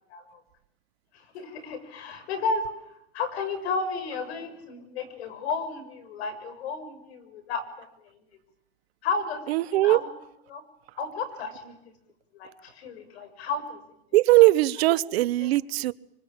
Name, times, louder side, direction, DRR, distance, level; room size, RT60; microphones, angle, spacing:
voice 1, 1.3-2.7 3.1-7.9 9.0-10.1 10.5-10.6 11.0-11.7 12.3-13.8 14.4-14.5 15.1-15.5, left 4 dB, 80° left, 11 dB, 6.7 m, -33 dB
voice 2, 9.5-10.0 14.1-15.9, right 18 dB, 70° right, 19 dB, 1.0 m, -20 dB
26.5 x 25.0 x 8.9 m, 0.79 s
supercardioid pair, 125°, 32 cm